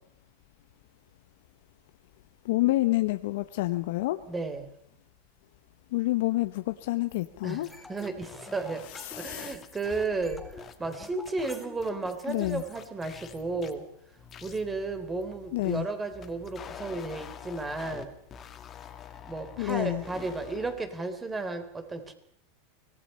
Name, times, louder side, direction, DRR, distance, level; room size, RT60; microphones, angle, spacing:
voice 1, 2.4-4.2 5.9-7.7 9.1-9.5 12.3-12.6 15.5-15.8 19.6-20.0, left 18 dB, 70° left, 9 dB, 1.0 m, -28 dB
voice 2, 4.3-4.8 7.4-8.9 9.1-13.9 14.4-18.1 19.2-22.1, right 3 dB, 15° right, 9 dB, 3.5 m, -33 dB
sound 1, 7.1-7.3 7.6-10.1 10.6-11.5 11.8-13.8 14.2-15.8 16.1-18.0 18.3-20.7, left 8 dB, 30° left, 2.5 m, -47 dB
sound 2, 7.7-9.6 9.9-12.7, left 2 dB, 5° left, 4.6 m, -48 dB
24.5 x 19.5 x 5.6 m, 0.72 s
supercardioid pair, 120°, 0 cm